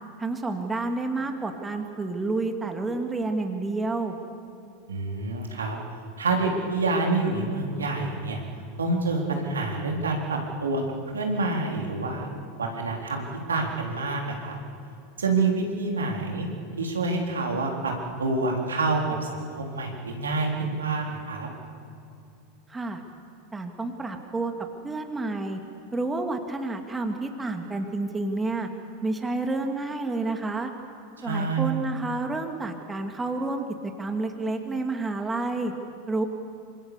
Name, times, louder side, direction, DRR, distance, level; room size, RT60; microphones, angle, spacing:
voice 1, 0.2-4.1 22.7-23.0 23.5-24.5 24.8-25.6 25.9-28.7 29.0-30.7 31.2-33.6 34.0-35.7 36.1-36.3, right 3 dB, 15° right, 4 dB, 2.5 m, -29 dB
voice 2, 4.9-5.8 6.2-8.4 8.8-10.8 11.1-12.3 12.6-14.6 15.2-16.5 16.8-17.9 18.2-21.5 31.2-31.7, right 3 dB, 75° right, 1 dB, 3.7 m, -27 dB
27.5 x 26.0 x 6.9 m, 2.7 s
figure-of-eight pair, 85°, 0 cm